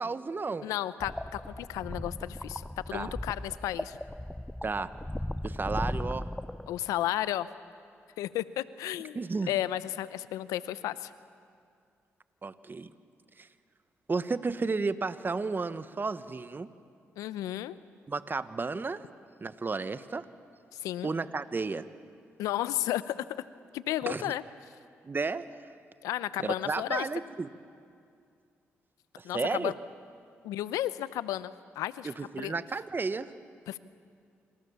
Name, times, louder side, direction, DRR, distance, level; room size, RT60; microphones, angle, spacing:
voice 1, 0.0-0.7 2.9-3.1 4.6-4.9 5.4-6.3 9.1-9.5 12.4-12.9 13.4-13.5 14.1-16.7 18.1-19.0 19.4-20.3 21.0-21.9 24.1-24.3 25.1-25.5 26.4-27.5 29.2-29.7 32.0-33.3, right 4 dB, 40° right, 13 dB, 1.3 m, -32 dB
voice 2, 0.6-4.0 6.7-7.5 8.2-11.1 17.2-17.8 20.7-21.1 22.4-23.4 23.7-24.4 26.0-27.1 29.2-29.7 30.4-32.1 32.4-32.5 33.7-33.8, left 13 dB, 85° left, 16 dB, 0.7 m, -33 dB
sound 1, 1.0-7.1, left 1 dB, 5° left, 0.6 m, -37 dB
28.0 x 26.5 x 7.2 m, 2.3 s
supercardioid pair, 50°, 6 cm